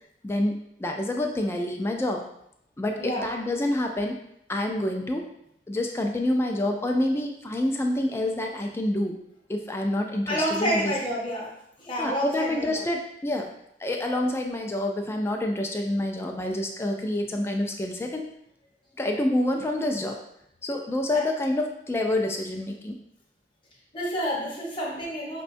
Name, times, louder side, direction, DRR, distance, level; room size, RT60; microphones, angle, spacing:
voice 1, 0.2-2.2 2.8-4.2 4.5-5.3 5.7-9.2 9.5-10.9 12.0-13.5 13.8-18.2 19.0-20.2 20.6-23.0, left 1 dB, 15° left, 2 dB, 0.3 m, -27 dB
voice 2, 3.0-3.3 10.3-11.5 11.8-12.8 21.1-21.2 23.9-25.4, equal, 30° left, -3 dB, 0.9 m, -29 dB
5.1 x 2.2 x 2.6 m, 0.75 s
head